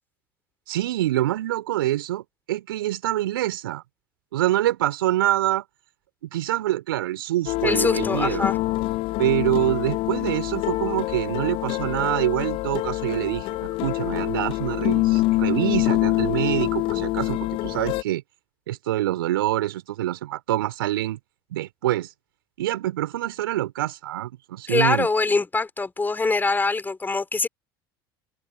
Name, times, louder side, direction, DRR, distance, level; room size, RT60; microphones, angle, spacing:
voice 1, 0.7-3.8 4.3-5.6 6.3-8.5 9.2-18.2 18.7-21.2 21.5-22.1 22.6-25.1, right 14 dB, 70° right, 2.9 m, -25 dB
sound 1, 7.5-18.0, left 19 dB, 50° left, 0.5 m, -25 dB
voice 2, 7.6-8.6 24.7-27.5, left 3 dB, 15° left, 3.8 m, -23 dB
figure-of-eight pair, 70°, 12 cm